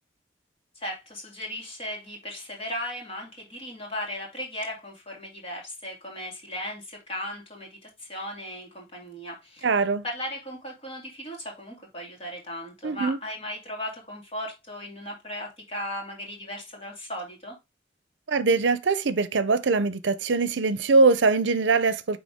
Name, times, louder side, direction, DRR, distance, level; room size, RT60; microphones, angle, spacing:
voice 1, 0.7-17.5, left 1 dB, 30° left, 2.5 m, -37 dB
voice 2, 9.6-10.0 12.8-13.2 18.3-22.2, right 4 dB, 75° right, 0.6 m, -22 dB
9.4 x 3.5 x 3.6 m
head